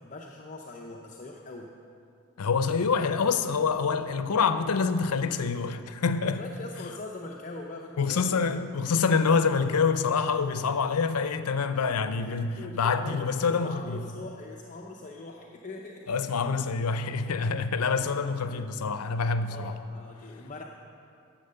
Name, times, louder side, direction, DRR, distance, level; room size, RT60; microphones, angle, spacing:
voice 1, 0.0-1.7 6.3-8.7 9.3-9.7 12.2-16.1 17.8-18.2 19.5-20.6, left 2 dB, 35° left, 0.6 m, -42 dB
voice 2, 2.4-6.4 8.0-14.0 16.1-19.7, left 5 dB, 90° left, 0.6 m, -26 dB
10.5 x 7.5 x 6.6 m
head